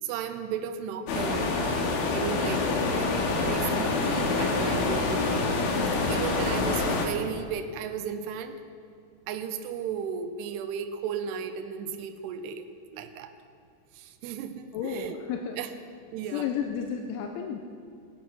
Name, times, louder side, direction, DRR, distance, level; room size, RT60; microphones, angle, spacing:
voice 1, 0.0-1.6 2.1-3.1 3.4-5.5 6.1-8.6 9.3-12.7 12.9-13.3 13.9-15.2 15.6-15.7 16.1-16.5, right 7 dB, 85° right, 6 dB, 2.4 m, -35 dB
sound 1, 1.1-7.1, left 3 dB, 65° left, 2.5 m, -26 dB
voice 2, 5.9-6.4 14.7-15.6 16.3-17.6, left 8 dB, 85° left, 3 dB, 3.0 m, -33 dB
21.5 x 8.4 x 6.0 m, 2.3 s
omnidirectional pair, 5.8 m